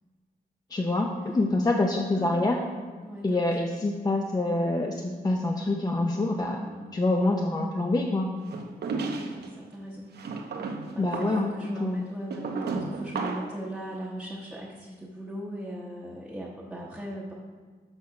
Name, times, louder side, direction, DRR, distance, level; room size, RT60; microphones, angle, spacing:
voice 1, 0.7-2.6 3.2-6.6 6.9-8.4 11.0-12.1, left 2 dB, 25° left, 2 dB, 0.5 m, -26 dB
voice 2, 2.1-2.5 3.0-3.7 6.3-6.9 8.9-10.1 10.4-17.3, right 1 dB, 5° right, -4 dB, 0.9 m, -39 dB
sound 1, 8.5-9.5 10.2-13.6, right 4 dB, 80° right, 0.8 m, -34 dB
6.6 x 5.8 x 5.8 m, 1.5 s
wide cardioid pair, 140°, 17 cm